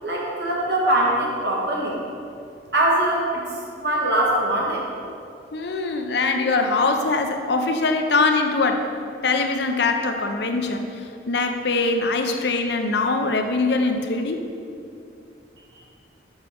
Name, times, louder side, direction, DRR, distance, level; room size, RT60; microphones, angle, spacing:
voice 1, 0.0-2.0 2.7-3.4 3.8-4.8 15.7-15.8, right 1 dB, 60° right, -4 dB, 1.8 m, -22 dB
voice 2, 5.5-8.9 9.2-14.5, left 3 dB, 60° left, 5 dB, 0.6 m, -22 dB
7.2 x 5.7 x 5.1 m, 2.6 s
head